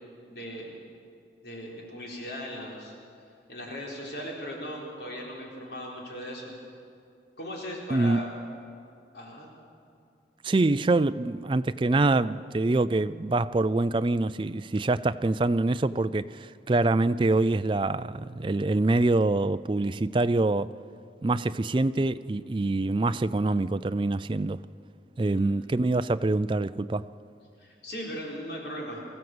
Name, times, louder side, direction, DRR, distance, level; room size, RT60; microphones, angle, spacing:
voice 1, 0.3-0.8 1.4-2.9 3.5-6.5 7.4-8.3 9.1-9.5 25.2-25.5 27.6-29.1, equal, 70° left, 4.1 m, -38 dB
voice 2, 7.9-8.2 10.4-20.7 21.2-24.6 25.2-27.1, right 2 dB, 30° right, 0.4 m, -25 dB
23.0 x 15.0 x 7.9 m
head